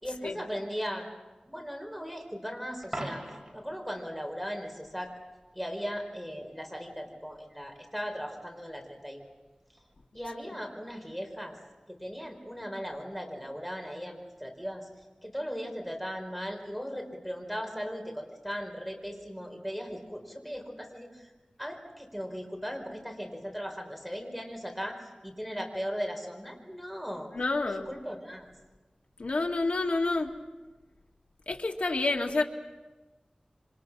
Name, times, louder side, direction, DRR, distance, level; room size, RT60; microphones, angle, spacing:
voice 1, 0.0-1.1 1.4-3.2 3.5-5.1 5.5-9.2 10.1-11.6 11.9-14.9 15.2-21.3 21.6-25.0 25.2-27.3 27.6-28.5, equal, 5° left, 3 dB, 4.9 m, -38 dB
Coin (dropping), 2.8-3.7 9.8-9.9, right 1 dB, 20° right, 5.1 m, -39 dB
voice 2, 27.3-27.9 29.2-30.3 31.5-32.4, left 3 dB, 85° left, 2 dB, 2.0 m, -28 dB
27.5 x 26.0 x 6.3 m, 1.2 s
wide cardioid pair, 70°, 2 cm